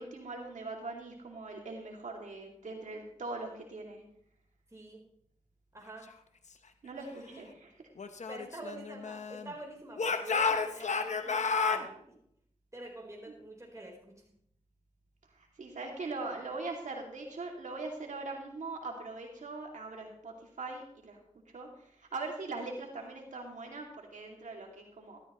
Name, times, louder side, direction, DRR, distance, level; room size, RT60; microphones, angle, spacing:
voice 1, 0.0-4.0 6.8-7.7 13.3-13.4 15.3-21.2 21.5-25.2, right 3 dB, 85° right, 1 dB, 2.5 m, -41 dB
voice 2, 4.7-5.0 5.7-6.1 7.0-7.4 8.3-12.1 12.7-14.3, right 1 dB, 25° right, -1 dB, 4.0 m, -47 dB
Speech / Shout, 8.0-9.5 10.0-11.9, left 5 dB, 70° left, 1.0 m, -31 dB
13.0 x 13.0 x 3.1 m, 0.70 s
cardioid pair, 45°, 12 cm